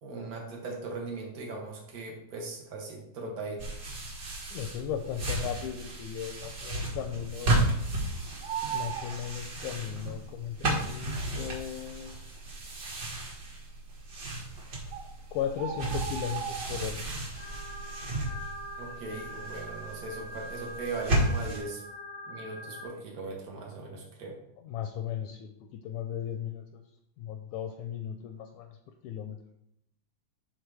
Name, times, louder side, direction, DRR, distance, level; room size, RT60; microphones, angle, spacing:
voice 1, 0.0-3.7 18.8-21.8 22.3-24.3, right 3 dB, 60° right, 0 dB, 0.9 m, -39 dB
sound 1, 3.6-21.6, right 1 dB, 40° right, 1.8 m, -34 dB
voice 2, 4.5-7.6 8.7-12.2 15.3-17.0 24.6-26.8 27.2-28.8 29.0-29.4, left 9 dB, 80° left, 6 dB, 1.8 m, -36 dB
Bird, 5.6-6.1 6.4-6.5 6.8-8.0 8.2-10.1 10.9-11.0 11.7-11.8 12.0-12.1 12.7-13.2 14.1-14.2 14.6-14.7 14.9-17.2 17.5-17.9 18.2-19.5 19.9-20.1, right 9 dB, 75° right, 1.8 m, -38 dB
sound 2, 17.4-22.8, equal, 65° left, 0.9 m, -43 dB
11.0 x 3.9 x 3.4 m, 0.80 s
omnidirectional pair, 3.6 m